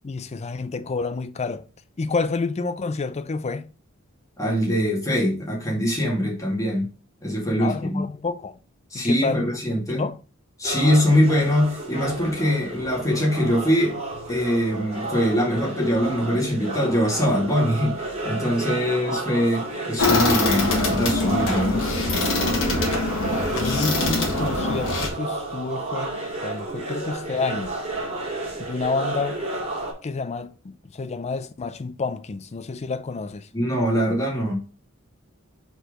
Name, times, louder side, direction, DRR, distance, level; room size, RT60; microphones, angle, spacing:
voice 1, 0.0-1.6 2.0-3.7 7.6-8.6 8.9-9.4 10.0-10.2 23.5-27.8 28.6-29.4 30.0-33.5, left 4 dB, 30° left, 0.4 m, -29 dB
voice 2, 4.4-6.9 7.2-8.0 8.9-10.1 10.6-14.0 14.3-21.8 33.5-34.6, equal, 15° left, 2.2 m, -23 dB
sound 1, 10.6-29.9, right 2 dB, 35° right, 2.3 m, -31 dB
sound 2, 20.0-25.1, left 3 dB, 65° left, 1.8 m, -23 dB
4.6 x 4.5 x 5.0 m
head